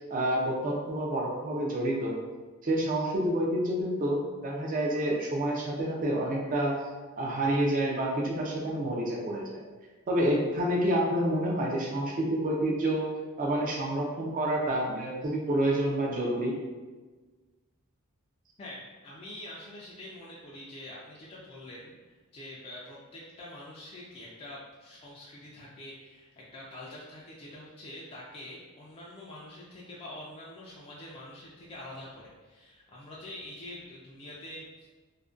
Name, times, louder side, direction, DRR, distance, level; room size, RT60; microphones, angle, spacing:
voice 1, 0.0-2.1 2.6-6.8 7.2-9.6 10.1-13.1 13.4-16.5, right 1 dB, 40° right, -2 dB, 0.4 m, -28 dB
voice 2, 18.6-34.9, left 1 dB, 25° left, -6 dB, 0.3 m, -45 dB
2.4 x 2.1 x 2.4 m, 1.3 s
head